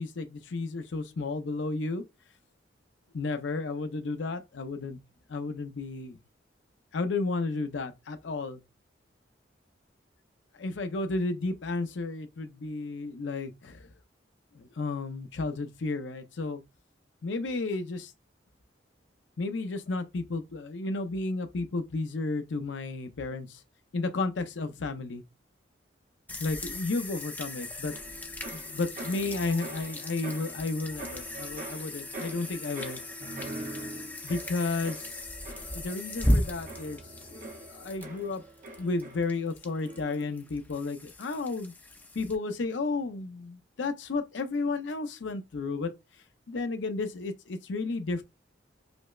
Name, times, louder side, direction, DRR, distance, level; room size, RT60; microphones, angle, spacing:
voice 1, 0.0-2.0 3.1-5.0 5.3-6.2 6.9-8.6 10.5-13.9 14.5-16.6 17.2-18.1 19.4-23.6 23.9-25.2 26.4-27.9 28.5-33.0 34.2-35.1 35.7-37.0 37.3-38.4 38.8-41.7 42.1-45.9 46.5-48.2, left 3 dB, 75° left, 0.5 m, -32 dB
sound 1, 26.3-42.4, left 1 dB, 10° left, 0.3 m, -36 dB
sound 2, 27.9-39.5 39.8-40.3, right 2 dB, 45° right, 0.7 m, -44 dB
5.0 x 2.1 x 2.3 m
head